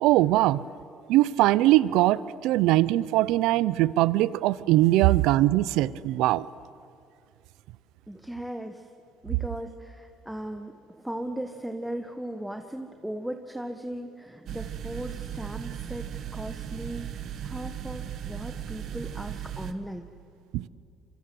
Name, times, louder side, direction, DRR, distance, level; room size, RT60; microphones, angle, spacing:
voice 1, 0.0-0.6 1.1-6.5 20.5-20.6, right 16 dB, 85° right, 19 dB, 0.6 m, -21 dB
voice 2, 8.1-8.9 9.2-16.1 16.3-17.1 17.4-20.1, right 1 dB, 5° right, 5 dB, 1.4 m, -37 dB
sound 1, 14.5-19.7, right 10 dB, 65° right, 1.5 m, -37 dB
27.0 x 24.5 x 7.8 m, 2.5 s
cardioid pair, 100°, 0 cm